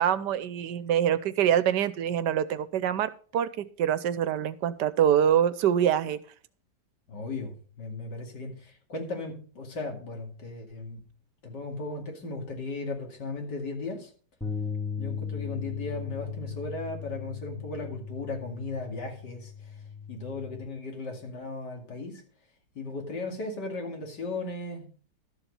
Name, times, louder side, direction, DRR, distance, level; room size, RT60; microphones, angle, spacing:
voice 1, 0.0-6.2, right 9 dB, 85° right, 15 dB, 1.4 m, -25 dB
voice 2, 7.1-11.0 11.4-14.1 15.0-19.7 20.1-22.2 22.7-24.9, left 3 dB, 80° left, 2 dB, 3.1 m, -36 dB
sound 1, 14.4-20.7, left 6 dB, ahead, 1.4 m, -37 dB
12.5 x 7.2 x 5.3 m, 0.41 s
omnidirectional pair, 1.8 m